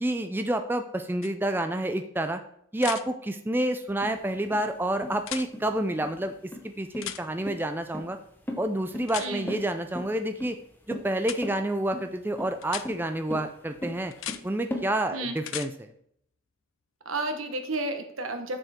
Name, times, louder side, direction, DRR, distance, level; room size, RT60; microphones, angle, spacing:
voice 1, 0.0-2.4 2.7-6.3 6.6-8.2 8.6-10.6 10.9-14.1 14.4-15.9, right 1 dB, 10° right, 7 dB, 0.4 m, -29 dB
sound 1, 1.2-1.3 2.8-3.0 5.2-5.5 7.0-7.2 9.1-9.3 11.2-11.4 12.6-12.9 14.1-14.4 15.4-15.7 17.7-17.8, left 12 dB, 75° left, 0.5 m, -35 dB
sound 2, 4.0-14.9, left 1 dB, 10° left, 0.8 m, -38 dB
voice 2, 9.2-9.6 15.1-15.4 17.0-18.6, right 2 dB, 90° right, 6 dB, 1.2 m, -32 dB
7.1 x 6.3 x 4.4 m, 0.70 s
head